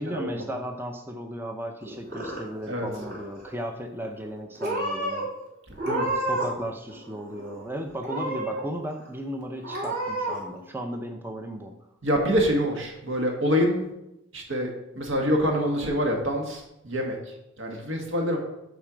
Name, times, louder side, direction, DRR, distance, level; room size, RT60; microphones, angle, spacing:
voice 1, 0.0-5.3 6.3-11.8, equal, 10° right, 4 dB, 0.5 m, -35 dB
Purr / Meow, 1.8-2.7 3.0-3.5 4.2-4.3 4.6-5.2 5.7-6.6 6.9-7.6 8.0-8.6 9.1-9.2 9.6-10.4, right 1 dB, 55° right, 3.1 m, -30 dB
voice 2, 12.0-13.8 14.3-14.7 15.0-18.4, equal, 70° right, 1 dB, 1.7 m, -26 dB
9.2 x 4.5 x 5.0 m, 0.89 s
head